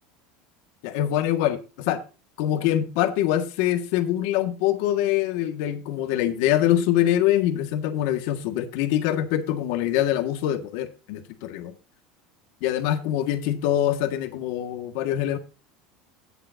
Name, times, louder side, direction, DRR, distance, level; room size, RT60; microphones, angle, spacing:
voice 1, 0.8-2.0 2.4-11.7 12.6-15.4, left 12 dB, 65° left, 1.6 m, -24 dB
17.0 x 6.9 x 2.7 m
cardioid pair, 160°, 0 cm